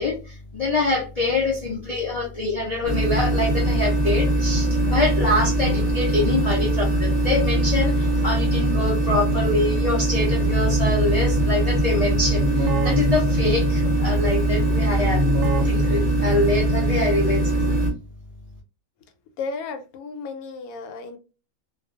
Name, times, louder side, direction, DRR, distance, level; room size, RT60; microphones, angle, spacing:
voice 1, 0.0-15.2 15.6-17.7, left 2 dB, 60° left, 0.4 m, -25 dB
sound 1, 2.8-17.9, right 1 dB, 30° right, 0.8 m, -22 dB
Keyboard (musical), 10.2-17.1, equal, 65° right, 0.8 m, -28 dB
voice 2, 19.4-21.2, left 4 dB, 85° left, 1.0 m, -33 dB
2.4 x 2.2 x 2.3 m
omnidirectional pair, 1.5 m